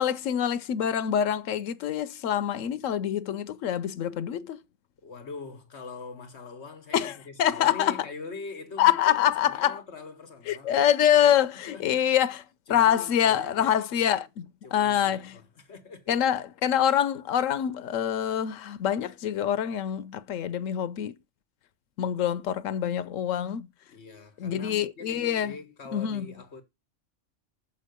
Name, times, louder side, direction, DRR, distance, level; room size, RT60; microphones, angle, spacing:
voice 1, 0.0-4.6 6.9-8.0 8.8-9.8 10.5-12.4 12.7-14.5 14.7-15.4 16.1-21.1 22.0-23.7 24.4-25.5 25.9-26.3, left 10 dB, 90° left, 1.0 m, -25 dB
voice 2, 5.0-10.9 11.6-12.1 12.7-13.8 14.6-16.2 23.9-26.6, left 4 dB, 60° left, 1.5 m, -43 dB
6.9 x 5.5 x 6.6 m
omnidirectional pair, 1.3 m